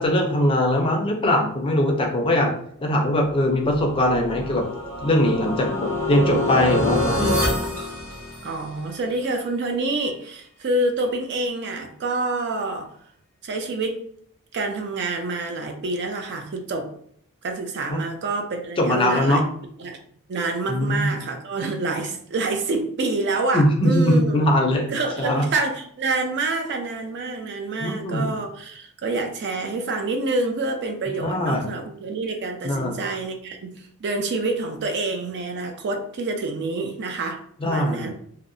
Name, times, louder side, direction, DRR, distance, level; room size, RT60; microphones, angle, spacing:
voice 1, 0.0-2.5 2.8-4.7 5.0-7.4 17.9-18.0 18.8-19.4 20.7-21.1 23.5-24.9 25.2-25.4 27.8-28.3 31.2-31.7 32.6-33.0 37.6-38.1, left 1 dB, 25° left, 2 dB, 0.4 m, -21 dB
sound 1, 3.6-8.8, left 1 dB, 90° right, 1.3 m, -26 dB
voice 2, 8.4-12.9 13.4-14.0 14.5-16.9 17.4-19.4 19.8-20.0 20.3-24.5 24.8-38.1, right 3 dB, 55° right, 4 dB, 0.4 m, -27 dB
2.7 x 2.0 x 2.5 m, 0.65 s
head